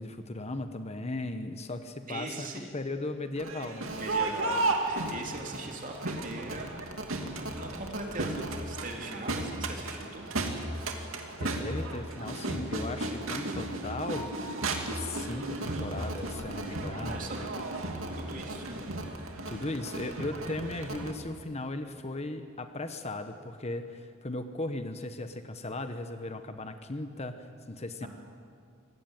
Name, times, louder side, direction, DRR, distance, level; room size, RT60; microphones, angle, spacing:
voice 1, 0.0-3.9 11.4-14.3 14.8-17.3 19.5-28.1, left 2 dB, 30° left, 8 dB, 1.1 m, -37 dB
voice 2, 2.1-2.7 4.0-6.7 7.2-10.3 17.0-17.4 18.1-18.8 28.0-28.1, right 2 dB, 40° right, 1 dB, 3.3 m, -40 dB
Crowd, 3.4-21.1, right 2 dB, 75° right, 2.7 m, -34 dB
24.5 x 19.0 x 9.1 m, 2.3 s
head